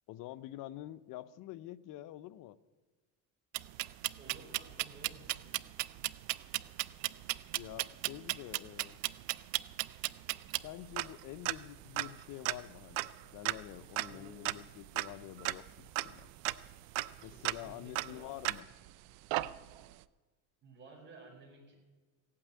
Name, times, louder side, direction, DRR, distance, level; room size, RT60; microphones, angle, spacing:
voice 1, 0.1-2.6 7.5-9.0 10.6-16.3 17.2-18.6, left 14 dB, 60° left, 12 dB, 0.8 m, -47 dB
sound 1, 3.5-18.9 19.3-19.9, right 19 dB, 75° right, 0.6 m, -37 dB
voice 2, 4.1-5.5 14.0-14.4 17.2-18.3 20.6-21.7, right 3 dB, 30° right, -1 dB, 5.1 m, -55 dB
16.0 x 8.7 x 8.8 m, 1.3 s
cardioid pair, 120°, 36 cm